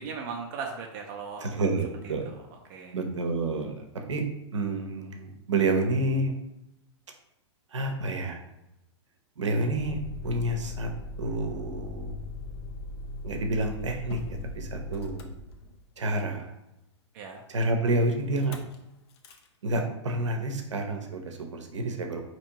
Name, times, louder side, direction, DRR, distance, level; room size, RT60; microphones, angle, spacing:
voice 1, 0.0-1.5 2.0-3.0 17.1-17.4, right 5 dB, 45° right, 1 dB, 0.6 m, -38 dB
voice 2, 1.4-2.3 2.9-4.2 4.5-6.3 7.7-8.4 9.4-10.9 11.2-12.1 13.2-14.2 14.5-15.3 16.0-16.5 17.5-18.6 19.6-22.2, right 2 dB, 80° right, 4 dB, 0.7 m, -29 dB
Motor vehicle (road), 9.7-16.1 18.3-18.8 19.1-19.5, left 2 dB, 60° left, 0.6 m, -39 dB
4.3 x 3.0 x 2.8 m, 0.89 s
hypercardioid pair, 110°, 15 cm